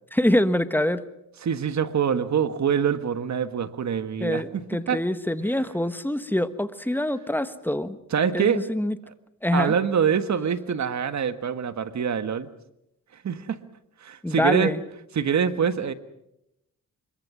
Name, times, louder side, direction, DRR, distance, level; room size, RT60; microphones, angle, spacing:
voice 1, 0.1-1.0 4.2-8.0 8.3-9.0 9.4-9.7 14.2-14.8, left 1 dB, 5° left, 12 dB, 1.3 m, -25 dB
voice 2, 1.4-4.6 4.9-5.0 8.1-8.6 9.1-9.2 9.5-12.5 13.2-13.6 14.0-14.7 15.1-15.9, right 7 dB, 55° right, 12 dB, 1.5 m, -25 dB
25.5 x 22.5 x 6.1 m, 0.83 s
cardioid pair, 85°, 33 cm